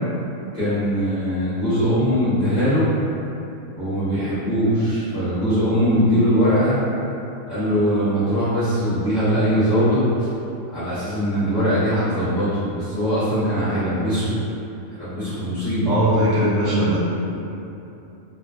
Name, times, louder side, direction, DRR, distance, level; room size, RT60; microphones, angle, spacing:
voice 1, 0.5-2.9 3.8-6.8 7.5-10.3 10.7-14.3 15.0-15.9, equal, 35° left, -14 dB, 0.8 m, -21 dB
voice 2, 15.9-17.0, equal, 65° right, -9 dB, 1.0 m, -19 dB
2.5 x 2.3 x 3.6 m, 2.8 s
omnidirectional pair, 1.5 m